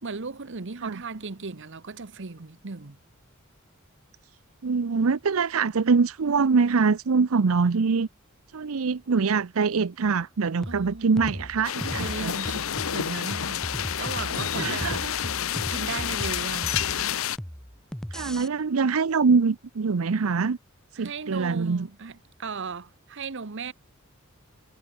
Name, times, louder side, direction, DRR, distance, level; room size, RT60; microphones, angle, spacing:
voice 1, 0.0-3.0 10.7-11.2 12.0-15.3 15.7-16.9 21.0-23.7, right 4 dB, 60° right, 1.0 m, -36 dB
voice 2, 4.6-8.1 8.5-12.3 14.6-15.1 18.1-20.6 21.0-21.9, right 5 dB, 75° right, 0.6 m, -24 dB
sound 1, 10.6-18.5, equal, 5° left, 0.6 m, -37 dB
sound 2, 11.6-17.4, left 9 dB, 70° left, 0.8 m, -29 dB
head